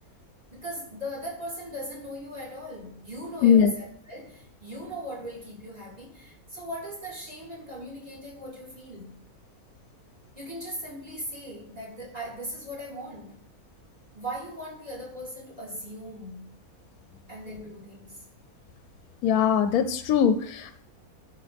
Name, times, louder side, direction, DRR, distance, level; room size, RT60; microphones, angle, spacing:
voice 1, 0.5-9.2 10.3-13.4 14.1-16.5 17.3-18.2, equal, 25° right, -6 dB, 3.4 m, -39 dB
voice 2, 3.4-3.7 19.2-20.8, left 8 dB, 80° left, 10 dB, 1.0 m, -21 dB
12.0 x 5.2 x 3.4 m, 0.65 s
omnidirectional pair, 1.6 m